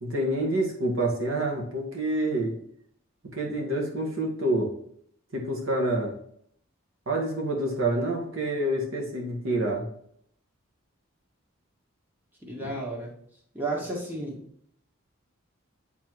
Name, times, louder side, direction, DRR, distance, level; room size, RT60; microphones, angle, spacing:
voice 1, 0.0-2.5 3.3-4.7 5.3-6.2 7.1-9.9 12.6-12.7, right 1 dB, 75° right, 0 dB, 1.8 m, -27 dB
voice 2, 12.5-13.1 13.5-14.4, right 2 dB, 10° right, -3 dB, 1.7 m, -32 dB
8.7 x 3.5 x 4.6 m, 0.67 s
head